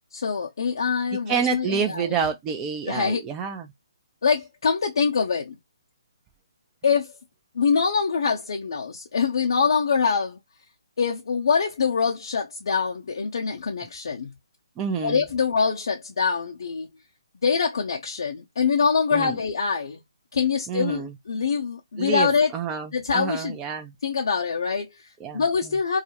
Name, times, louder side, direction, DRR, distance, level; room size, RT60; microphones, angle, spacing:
voice 1, 0.1-2.1 2.9-3.2 4.2-5.6 6.8-7.2 7.5-10.4 11.0-14.3 15.0-16.9 17.3-20.0 20.3-22.5 22.9-23.6 24.0-26.0, left 5 dB, 60° left, 0.5 m, -24 dB
voice 2, 1.3-3.7 14.8-15.2 19.1-19.4 20.7-21.1 22.0-23.9 25.2-25.4, right 7 dB, 15° right, 0.4 m, -28 dB
2.3 x 2.1 x 2.8 m
figure-of-eight pair, 140°, 3 cm